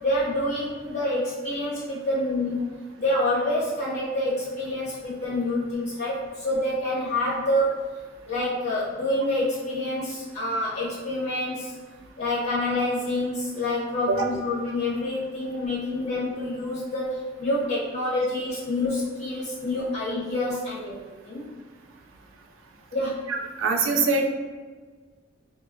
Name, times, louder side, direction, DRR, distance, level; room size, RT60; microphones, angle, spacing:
voice 1, 0.0-2.7 3.0-7.9 8.2-11.7 12.2-21.5 22.9-23.2, left 1 dB, 55° left, -8 dB, 0.8 m, -27 dB
voice 2, 23.3-24.2, right 3 dB, 80° right, 3 dB, 0.4 m, -23 dB
2.8 x 2.3 x 2.5 m, 1.4 s
head